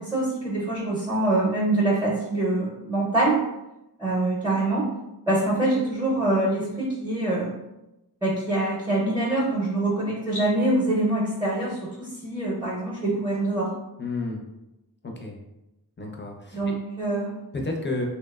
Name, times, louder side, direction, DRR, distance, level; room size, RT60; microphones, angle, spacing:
voice 1, 0.0-3.4 4.0-4.9 5.3-7.5 8.2-13.7 16.5-17.4, right 2 dB, 10° right, -5 dB, 0.6 m, -24 dB
voice 2, 14.0-14.4 15.0-15.4 16.0-16.7 17.5-18.1, left 2 dB, 30° left, 0 dB, 0.5 m, -31 dB
2.8 x 2.0 x 2.3 m, 0.92 s
wide cardioid pair, 50°, 39 cm